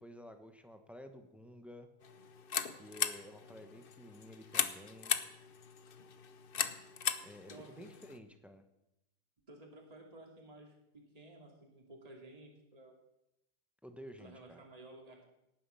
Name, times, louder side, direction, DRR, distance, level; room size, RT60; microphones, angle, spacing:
voice 1, 0.0-1.9 2.8-5.2 7.2-8.6 13.8-14.6, left 1 dB, ahead, 7 dB, 0.8 m, -52 dB
sound 1, 2.0-8.2, left 7 dB, 50° left, 0.7 m, -38 dB
voice 2, 7.5-7.9 9.5-12.9 14.2-15.2, right 2 dB, 20° right, 1 dB, 2.5 m, -54 dB
18.0 x 9.5 x 5.7 m, 0.88 s
omnidirectional pair, 1.8 m